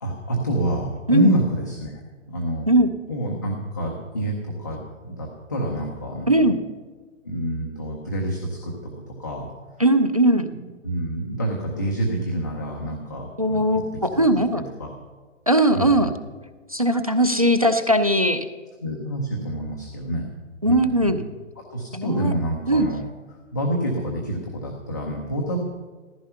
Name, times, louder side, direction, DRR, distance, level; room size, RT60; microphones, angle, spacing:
voice 1, 0.0-1.9 2.3-2.7 3.1-6.4 7.2-8.7 9.1-9.5 10.5-13.3 13.7-13.8 14.1-14.4 14.8-14.9 15.7-16.1 18.8-20.2 20.6-21.2 21.6-23.0 23.5-25.6, right 1 dB, 15° left, -2 dB, 0.7 m, -27 dB
voice 2, 9.8-10.5 13.4-14.6 15.5-16.1 16.7-18.5 20.6-21.2 21.9-22.3 22.7-22.9, right 1 dB, 30° right, 8 dB, 0.4 m, -19 dB
14.5 x 13.5 x 5.6 m, 1.4 s
hypercardioid pair, 175°, 39 cm